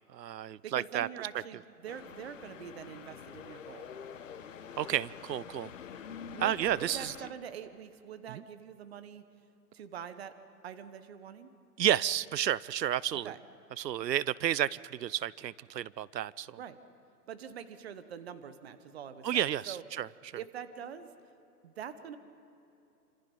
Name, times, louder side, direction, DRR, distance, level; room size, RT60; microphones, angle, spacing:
voice 1, 0.1-1.1 4.8-5.7 6.4-7.1 8.3-8.4 11.8-13.3 13.8-16.6 19.2-20.1, right 11 dB, 85° right, 22 dB, 0.7 m, -31 dB
voice 2, 0.6-4.0 6.2-9.2 9.7-10.4 10.6-11.5 13.2-13.4 16.6-16.8 17.3-19.8 20.4-21.1 21.6-22.2, right 8 dB, 40° right, 12 dB, 1.2 m, -44 dB
sound 1, 1.9-7.3, left 7 dB, 50° left, 1.6 m, -46 dB
28.0 x 26.5 x 5.5 m, 2.9 s
hypercardioid pair, 160°, 49 cm